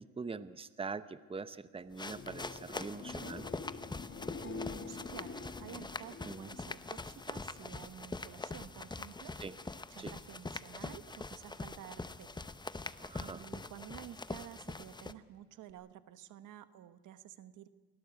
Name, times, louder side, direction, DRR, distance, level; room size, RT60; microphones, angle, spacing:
voice 1, 0.0-3.5 6.2-6.5 9.4-9.5 10.0-10.1 13.0-13.5, right 4 dB, 20° right, 13 dB, 0.9 m, -43 dB
sound 1, 1.9-7.7 8.1-8.6 15.7-15.8, left 5 dB, 40° left, 2.1 m, -47 dB
sound 2, 1.9-15.1, left 3 dB, 15° left, 0.9 m, -44 dB
voice 2, 4.4-17.7, right 11 dB, 85° right, 12 dB, 1.2 m, -52 dB
23.0 x 17.5 x 8.3 m, 1.4 s
cardioid pair, 90°, 30 cm